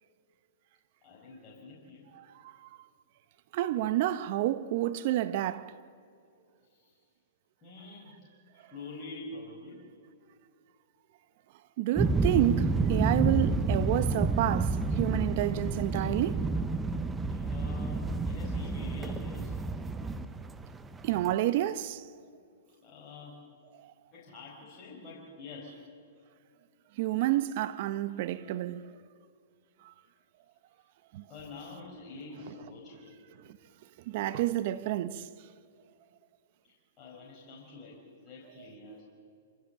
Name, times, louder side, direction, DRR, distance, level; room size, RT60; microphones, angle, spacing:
voice 1, 1.0-2.1 6.7-6.9 7.6-8.2 8.5-9.8 17.4-19.6 22.8-23.4 24.1-25.8 31.3-33.2 37.0-39.0, left 3 dB, 25° left, 5.0 m, -46 dB
voice 2, 2.2-2.7 3.5-5.7 11.8-16.5 21.0-22.1 23.8-23.9 27.0-28.9 29.8-29.9 31.1-31.2 34.1-35.3, right 14 dB, 50° right, 0.8 m, -29 dB
sound 1, 12.0-21.3, right 3 dB, 15° right, 0.9 m, -29 dB
27.0 x 15.5 x 7.1 m
hypercardioid pair, 125°, 0 cm